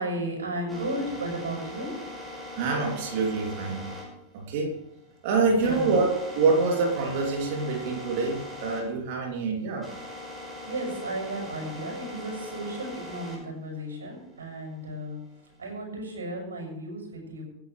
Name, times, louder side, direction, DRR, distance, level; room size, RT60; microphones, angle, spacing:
voice 1, 0.0-1.9 5.6-5.9 10.6-15.2 15.6-17.4, right 1 dB, 70° right, -1 dB, 6.6 m, -34 dB
sound 1, 0.7-8.8 9.1-13.4 13.9-15.7, left 1 dB, 10° right, 5.6 m, -41 dB
voice 2, 2.6-3.9 4.3-4.7 5.2-9.9, right 4 dB, 50° right, 0 dB, 3.2 m, -26 dB
27.5 x 10.5 x 3.4 m, 0.80 s
figure-of-eight pair, 90°, 0 cm